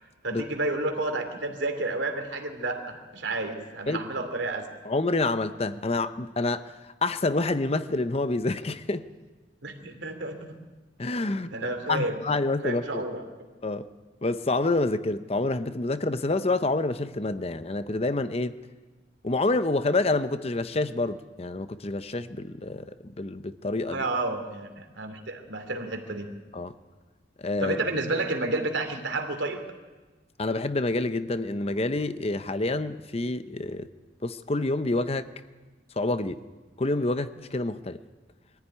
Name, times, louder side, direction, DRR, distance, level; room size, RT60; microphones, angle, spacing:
voice 1, 0.2-4.6 9.6-10.5 11.5-12.2 12.6-13.2 23.9-26.3 27.6-29.6, right 2 dB, 85° right, 5 dB, 2.9 m, -30 dB
voice 2, 4.8-9.1 11.0-11.5 11.9-13.0 13.6-13.9 14.2-18.5 19.2-24.0 26.5-26.7 27.4-27.8 30.4-33.9 34.2-35.3 36.0-36.4 36.8-38.0, left 2 dB, 35° left, 12 dB, 0.7 m, -28 dB
22.5 x 14.5 x 9.9 m, 1.3 s
head